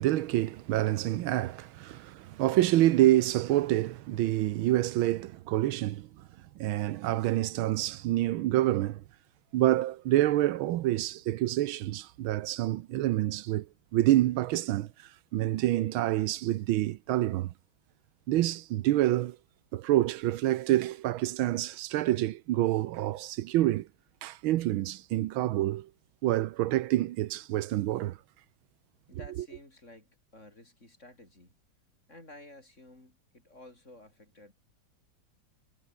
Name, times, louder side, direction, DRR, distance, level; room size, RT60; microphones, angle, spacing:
voice 1, 0.0-6.1 6.6-9.0 9.5-13.7 13.9-14.9 15.3-17.5 18.3-19.4 19.7-23.9 24.2-25.9 26.2-28.2, right 15 dB, 85° right, 1.6 m, -27 dB
voice 2, 29.1-31.6 32.1-34.5, left 1 dB, 35° left, 7.2 m, -53 dB
omnidirectional pair, 2.2 m